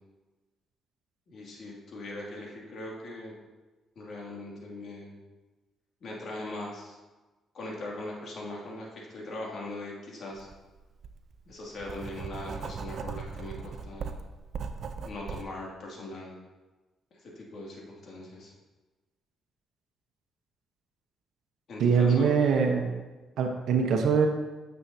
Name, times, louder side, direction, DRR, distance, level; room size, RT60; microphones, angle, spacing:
voice 1, 1.3-3.3 4.0-5.2 6.0-7.0 7.5-10.5 11.5-14.1 15.0-16.4 17.3-18.5 21.7-22.3, left 1 dB, 60° left, -3 dB, 2.5 m, -40 dB
Writing, 10.4-10.5 11.0-15.4, right 5 dB, 55° right, 0.6 m, -38 dB
voice 2, 21.8-22.9 23.4-24.3, right 6 dB, 80° right, 3 dB, 1.1 m, -23 dB
9.6 x 7.5 x 2.8 m, 1.2 s
cardioid pair, 90°, 0 cm